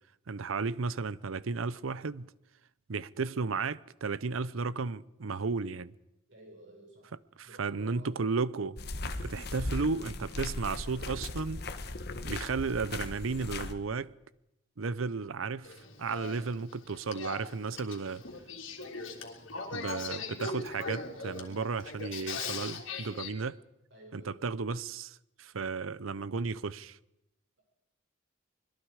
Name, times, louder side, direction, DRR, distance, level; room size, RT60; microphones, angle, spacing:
voice 1, 0.3-2.3 2.9-5.9 7.4-8.8 9.0-11.6 12.2-14.1 14.8-18.2 19.7-23.6 24.1-27.0, right 4 dB, 85° right, 0.7 m, -34 dB
voice 2, 6.3-7.2 7.4-8.2 9.0-9.2 23.9-24.5, right 1 dB, 65° right, 6.7 m, -53 dB
sound 1, 8.8-13.7, left 2 dB, 50° left, 1.3 m, -38 dB
Male speech man speaking / Female speech woman speaking / Conversation, 15.6-23.3, left 4 dB, 75° left, 3.3 m, -40 dB
25.0 x 22.0 x 4.9 m
head